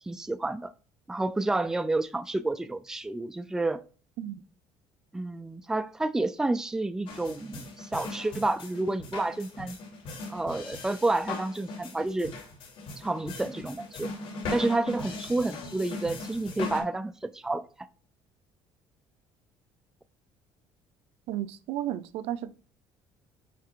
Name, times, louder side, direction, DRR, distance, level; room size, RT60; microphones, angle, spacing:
voice 1, 0.1-0.7 1.1-3.8 5.1-9.8 10.3-12.3 13.0-14.1 14.5-17.7, right 2 dB, 5° right, 0.4 m, -30 dB
sound 1, 7.1-16.8, left 3 dB, 65° left, 3.0 m, -39 dB
voice 2, 21.3-22.5, right 12 dB, 80° right, 0.6 m, -33 dB
9.4 x 3.3 x 3.7 m
cardioid pair, 140°, 10 cm